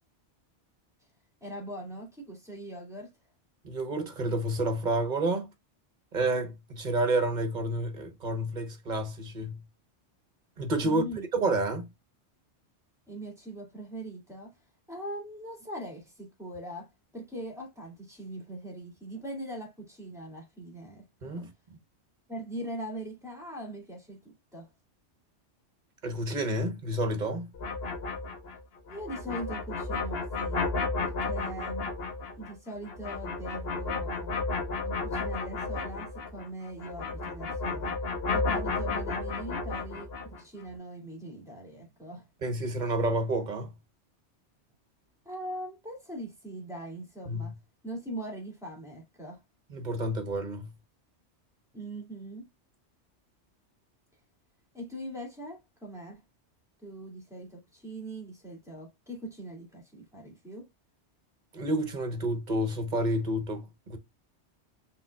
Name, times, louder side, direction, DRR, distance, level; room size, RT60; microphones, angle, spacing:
voice 1, 1.4-3.1 10.8-11.2 13.1-14.6 14.9-21.5 22.3-24.7 28.9-30.6 31.0-31.9 32.4-34.4 34.8-38.0 38.3-42.3 45.2-47.5 47.8-49.4 51.7-52.5 54.7-56.2 56.8-60.7, right 1 dB, 5° right, 2.2 m, -41 dB
voice 2, 3.6-5.5 6.1-9.6 10.6-11.0 11.3-11.9 21.2-21.5 26.0-27.5 42.4-43.7 47.3-47.5 49.7-50.7 61.5-64.0, right 1 dB, 45° right, 1.1 m, -29 dB
sound 1, 27.5-36.5 36.8-40.4, left 3 dB, 60° left, 1.2 m, -33 dB
5.5 x 3.7 x 2.3 m
omnidirectional pair, 1.2 m